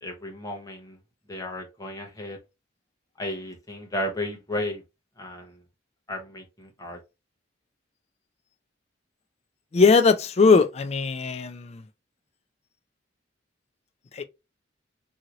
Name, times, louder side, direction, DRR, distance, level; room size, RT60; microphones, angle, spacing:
voice 1, 0.0-1.0 1.3-2.4 3.2-4.8 5.2-5.6 6.1-7.0, left 1 dB, 20° left, 0.8 m, -34 dB
voice 2, 9.7-11.8 14.1-14.2, left 4 dB, 35° left, 0.3 m, -20 dB
2.9 x 2.7 x 2.4 m
head